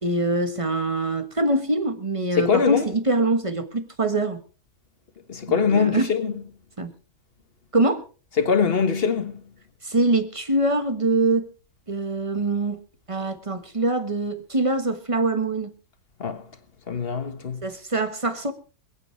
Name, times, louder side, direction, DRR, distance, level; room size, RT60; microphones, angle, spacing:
voice 1, 0.0-4.4 5.5-6.1 6.8-6.9 7.7-8.0 9.8-11.5 11.9-12.8 13.1-15.7 17.6-18.5, right 2 dB, 20° right, 1.3 m, -24 dB
voice 2, 2.4-2.8 5.3-6.3 8.4-9.3 16.2-16.4 16.9-17.6, left 6 dB, 40° left, 1.6 m, -22 dB
27.5 x 9.1 x 3.3 m
omnidirectional pair, 1.7 m